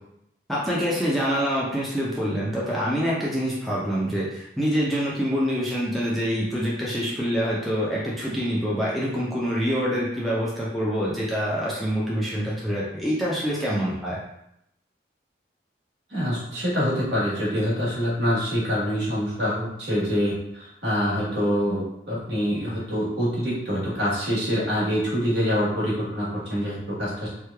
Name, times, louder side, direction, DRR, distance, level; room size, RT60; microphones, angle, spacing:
voice 1, 0.5-14.2, equal, ahead, -7 dB, 0.5 m, -26 dB
voice 2, 16.1-27.3, equal, 65° right, -6 dB, 1.4 m, -25 dB
3.1 x 2.3 x 3.3 m, 0.79 s
head